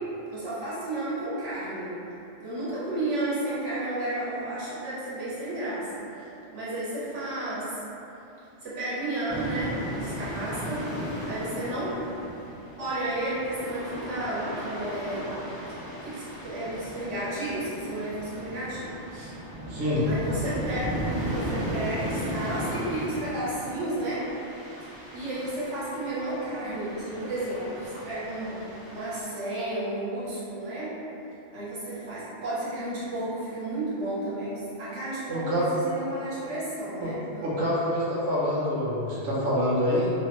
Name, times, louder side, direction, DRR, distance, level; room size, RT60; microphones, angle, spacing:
voice 1, 0.3-1.9 2.4-6.0 6.5-7.8 8.6-10.9 11.2-11.9 12.8-15.4 16.0-19.3 20.0-21.0 21.3-24.3 25.1-31.0 31.5-37.5, right 1 dB, 80° right, -10 dB, 1.2 m, -32 dB
sound 1, 9.3-29.2, equal, 25° right, 0.5 m, -36 dB
voice 2, 19.7-20.1 35.3-35.7 37.0-37.1 37.4-40.1, equal, 55° right, -8 dB, 0.8 m, -26 dB
2.7 x 2.0 x 2.9 m, 2.9 s
omnidirectional pair, 1.2 m